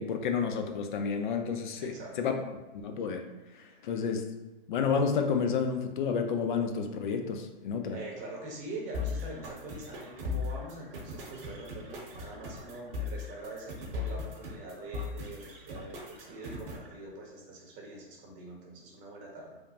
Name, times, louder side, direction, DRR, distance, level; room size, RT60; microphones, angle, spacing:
voice 1, 0.0-2.4 2.7-3.3 3.6-4.3 4.7-8.0, left 6 dB, 55° left, 5 dB, 0.5 m, -30 dB
voice 2, 1.8-2.2 3.7-3.9 7.9-19.6, right 2 dB, 25° right, -2 dB, 0.7 m, -44 dB
sound 1, 8.9-16.9, left 4 dB, 70° right, 0.9 m, -38 dB
3.2 x 2.0 x 2.7 m, 1.1 s
hypercardioid pair, 125°, 29 cm